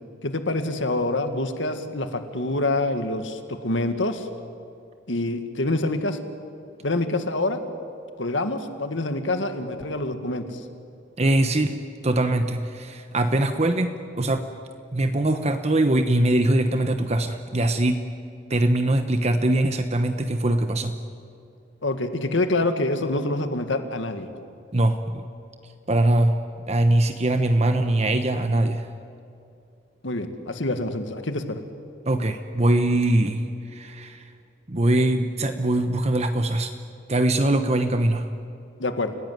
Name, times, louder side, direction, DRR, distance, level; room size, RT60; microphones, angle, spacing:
voice 1, 0.2-4.3 5.1-6.2 6.8-7.6 8.2-10.6 21.8-24.3 30.0-31.6 38.8-39.1, left 2 dB, 75° left, 8 dB, 1.9 m, -26 dB
voice 2, 11.2-14.5 14.9-18.0 18.5-21.0 24.7-25.2 25.9-26.4 26.7-28.9 32.1-34.3 34.7-36.7 37.1-38.2, right 1 dB, 35° right, 7 dB, 1.0 m, -22 dB
30.0 x 17.0 x 9.4 m, 2.6 s
head